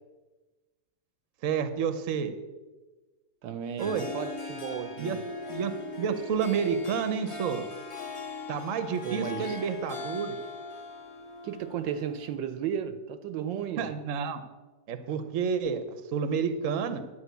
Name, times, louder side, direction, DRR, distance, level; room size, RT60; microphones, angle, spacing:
voice 1, 1.4-2.3 3.8-4.0 5.0-5.2 5.5-5.7 6.0-7.6 8.5-10.4 13.8-14.4 14.9-15.8 16.1-17.0, right 6 dB, 55° right, 1.0 m, -29 dB
voice 2, 3.4-5.2 9.0-9.6 11.4-13.9, right 8 dB, 75° right, 1.3 m, -34 dB
Harp, 3.6-12.3, left 3 dB, 20° left, 1.1 m, -40 dB
11.5 x 5.4 x 8.1 m
omnidirectional pair, 2.1 m